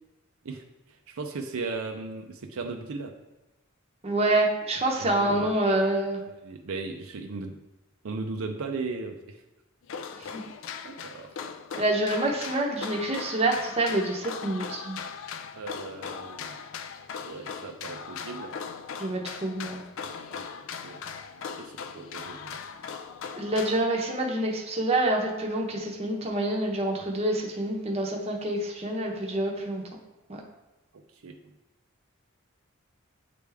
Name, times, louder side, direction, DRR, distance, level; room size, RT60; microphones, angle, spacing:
voice 1, 0.4-3.1 5.0-5.6 6.4-7.6 8.0-9.4 10.2-10.3 10.8-11.4 15.6-16.6 17.3-18.5 19.7-21.0 21.6-22.6 30.9-31.5, right 3 dB, 75° right, 4 dB, 0.5 m, -37 dB
voice 2, 4.0-6.2 10.2-10.4 11.8-15.0 19.0-19.8 23.4-29.8 30.3-30.4, right 1 dB, 30° right, 0 dB, 0.8 m, -27 dB
sound 1, 9.8-23.9, left 6 dB, 65° left, 0.3 m, -39 dB
8.3 x 3.4 x 3.4 m, 1.0 s
head